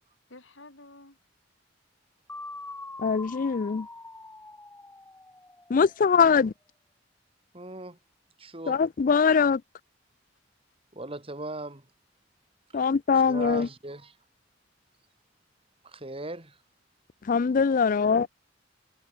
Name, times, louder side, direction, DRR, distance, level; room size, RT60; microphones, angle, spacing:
voice 1, 0.3-1.2 6.0-6.5 17.8-18.3, left 2 dB, 75° left, 4.9 m, -49 dB
sound 1, 2.3-6.2, left 2 dB, 10° left, 3.2 m, -43 dB
voice 2, 3.0-3.9 5.7-6.5 8.7-9.6 12.7-13.7 17.2-18.3, left 5 dB, 45° left, 0.4 m, -22 dB
voice 3, 7.5-8.0 8.4-8.8 10.9-11.9 12.7-12.8 13.3-14.2 15.8-16.6, right 2 dB, 30° right, 4.0 m, -39 dB
head